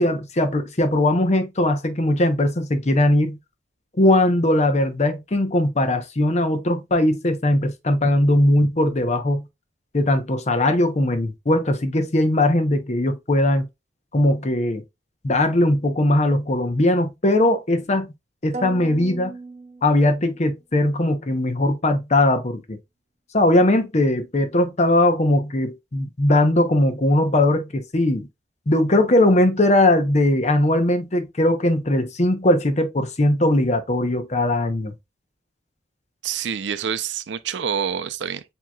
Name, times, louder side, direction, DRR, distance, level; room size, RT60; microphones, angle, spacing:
voice 1, 0.0-3.4 4.0-9.4 9.9-13.7 14.1-14.8 15.2-18.1 18.4-19.3 19.8-22.8 23.3-28.3 28.7-34.9, left 1 dB, 40° left, 0.8 m, -19 dB
sound 1, 18.5-20.5, right 3 dB, 40° right, 0.7 m, -36 dB
voice 2, 36.2-38.4, right 7 dB, 90° right, 0.5 m, -27 dB
7.4 x 2.9 x 2.3 m
head